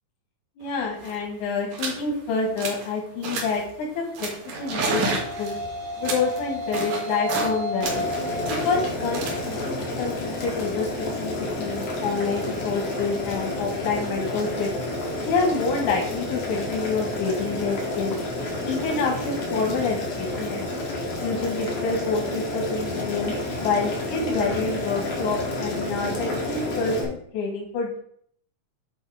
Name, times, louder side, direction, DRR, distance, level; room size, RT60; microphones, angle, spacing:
voice 1, 0.6-5.6 6.0-8.1 8.5-14.7 15.2-18.2 18.6-20.7 21.2-23.3 23.6-28.0, left 4 dB, 85° left, 0 dB, 2.7 m, -28 dB
sound 1, 0.7-0.8 0.9-1.2 1.7-2.0 2.4-2.9 3.2-3.7 4.2-7.5 7.8-10.8, right 3 dB, 85° right, 3.0 m, -31 dB
sound 2, 4.3-12.8, left 1 dB, 65° right, 2.6 m, -34 dB
Boiling, 7.8-27.0, left 1 dB, 60° left, 2.6 m, -30 dB
8.1 x 4.7 x 4.6 m, 0.66 s
omnidirectional pair, 3.4 m